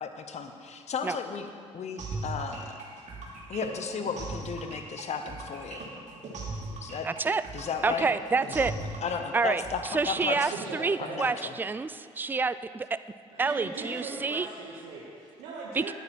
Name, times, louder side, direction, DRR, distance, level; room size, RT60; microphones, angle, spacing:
voice 1, 0.0-2.8 3.5-5.8 6.8-7.1 7.5-8.1 8.6-10.5 11.0-11.5, left 6 dB, 55° left, 7 dB, 1.0 m, -35 dB
sound 1, 2.0-10.7, right 3 dB, 60° right, 2.2 m, -38 dB
voice 2, 7.0-7.4 7.8-8.7 9.3-9.6 9.9-12.9 13.4-14.5 15.7-15.9, right 4 dB, 15° right, 14 dB, 0.3 m, -28 dB
voice 3, 10.5-11.3 13.3-15.9, right 4 dB, 90° right, -5 dB, 1.2 m, -39 dB
9.5 x 9.5 x 4.4 m, 2.3 s
supercardioid pair, 60°, 14 cm